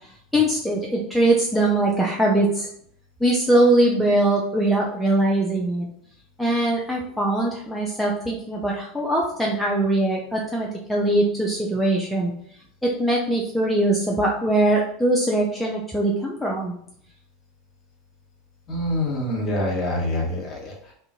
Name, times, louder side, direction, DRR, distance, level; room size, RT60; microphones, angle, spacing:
voice 1, 0.3-2.7 3.2-5.9 6.4-12.3 12.8-16.7, right 1 dB, ahead, -3 dB, 0.4 m, -21 dB
voice 2, 18.7-20.9, left 1 dB, 30° left, -2 dB, 1.0 m, -26 dB
2.5 x 2.3 x 2.7 m, 0.67 s
figure-of-eight pair, 80°, 0 cm